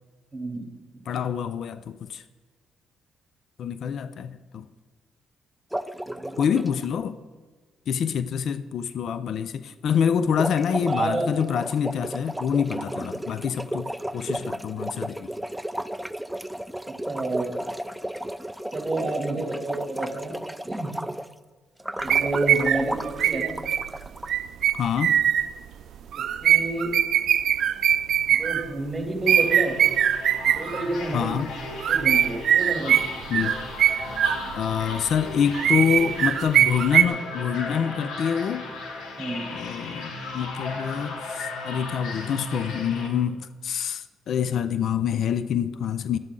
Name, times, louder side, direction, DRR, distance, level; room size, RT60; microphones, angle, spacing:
voice 1, 0.3-0.7 6.1-6.5 10.9-11.3 12.9-13.1 16.9-17.5 18.7-20.3 20.7-20.9 22.0-23.5 26.1-26.9 28.3-30.0 30.5-31.4 31.7-33.1 39.2-39.5 40.9-41.2, right 2 dB, 20° right, 2.8 m, -30 dB
voice 2, 1.1-2.2 3.6-4.6 6.4-7.2 7.9-15.3 24.7-25.2 31.1-31.5 33.3-33.6 34.5-38.7 39.4-46.2, left 7 dB, 65° left, 0.5 m, -26 dB
sound 1, 5.7-6.9 10.2-21.3 21.8-24.3, right 1 dB, 5° right, 0.4 m, -34 dB
sound 2, 22.0-25.5 26.1-28.7 29.3-30.8 31.6-34.7 35.1-37.1, right 10 dB, 70° right, 0.4 m, -22 dB
sound 3, 29.2-43.1, left 2 dB, 85° left, 1.9 m, -36 dB
12.0 x 11.0 x 3.9 m
cardioid pair, 90°, 0 cm